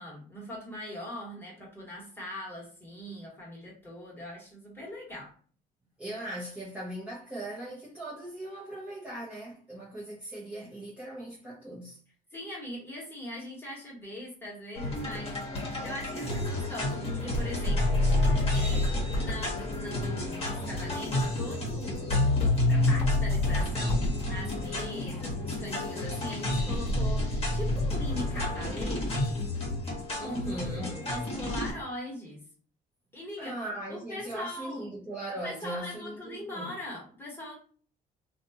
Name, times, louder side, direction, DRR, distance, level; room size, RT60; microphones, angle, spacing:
voice 1, 0.0-5.3 12.3-18.0 18.5-22.1 22.4-24.0 24.3-29.5 30.2-32.4 33.1-33.5 33.9-34.9 35.4-37.5, left 1 dB, 15° left, 1.3 m, -41 dB
voice 2, 6.0-12.0 30.2-31.1 33.4-36.8, right 1 dB, 10° right, 0.9 m, -39 dB
sound 1, 14.8-31.7, left 2 dB, 35° left, 1.2 m, -29 dB
2.6 x 2.4 x 2.7 m
cardioid pair, 110°, 17 cm